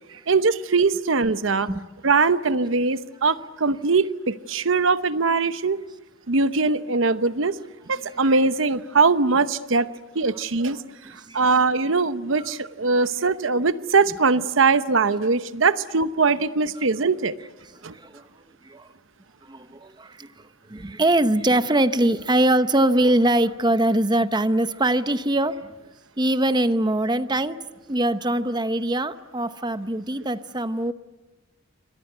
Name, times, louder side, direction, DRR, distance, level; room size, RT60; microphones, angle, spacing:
voice 1, 0.3-1.7 2.0-5.8 6.3-7.6 7.9-9.9 10.1-10.8 11.3-17.3 17.8-17.9, right 4 dB, 75° right, 13 dB, 0.9 m, -21 dB
voice 2, 17.9-18.3 18.6-18.9 19.5-20.3 20.7-25.6 26.2-27.6 27.9-30.9, right 1 dB, 20° right, 11 dB, 0.9 m, -22 dB
28.5 x 25.0 x 8.0 m, 1.1 s
head